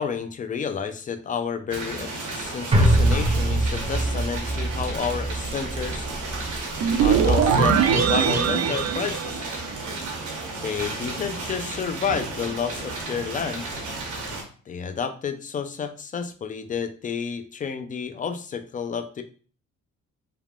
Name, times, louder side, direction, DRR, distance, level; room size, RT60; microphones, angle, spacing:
voice 1, 0.0-6.1 7.0-9.5 10.6-13.7 14.7-19.2, left 6 dB, 25° left, 9 dB, 0.4 m, -30 dB
sound 1, 1.7-14.4, right 2 dB, 80° right, 1.0 m, -33 dB
sound 2, 2.7-7.2 7.5-7.6, right 1 dB, 20° right, 0.7 m, -24 dB
sound 3, 6.8-10.1, right 6 dB, 60° right, 0.5 m, -21 dB
3.4 x 2.2 x 2.4 m, 0.41 s
cardioid pair, 90°, 30 cm